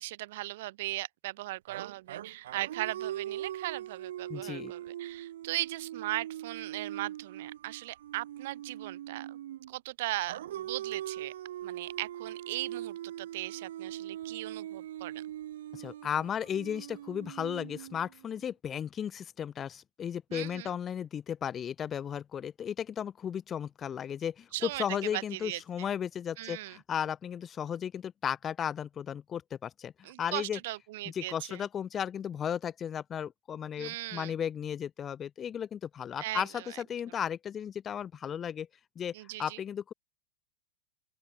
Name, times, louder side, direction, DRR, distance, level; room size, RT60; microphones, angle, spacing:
voice 1, 0.0-9.4 9.7-11.3 11.6-15.2 20.3-20.8 24.5-24.9 25.1-25.9 26.4-26.8 30.0-31.6 33.8-34.4 36.2-36.8 39.1-39.6, right 17 dB, 55° right, 1.2 m, -38 dB
sound 1, 1.7-9.7 10.3-18.4, right 12 dB, 75° right, 1.7 m, -41 dB
voice 2, 4.3-4.7 15.7-30.6 31.0-38.7 39.0-39.1 39.4-39.9, left 8 dB, 15° left, 1.0 m, -35 dB
open air
supercardioid pair, 165°, 0 cm